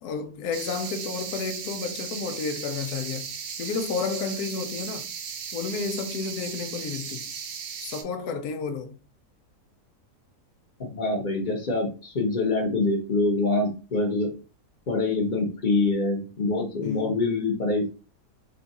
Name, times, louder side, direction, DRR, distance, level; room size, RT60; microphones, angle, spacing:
voice 1, 0.0-5.1 5.5-7.3 7.8-9.0 16.8-17.2, left 5 dB, 70° left, 1.1 m, -31 dB
sound 1, 0.5-8.0, right 6 dB, 80° right, 1.3 m, -36 dB
voice 2, 10.8-14.3 14.9-17.9, left 3 dB, 35° left, 0.9 m, -25 dB
3.6 x 2.4 x 4.1 m
omnidirectional pair, 1.8 m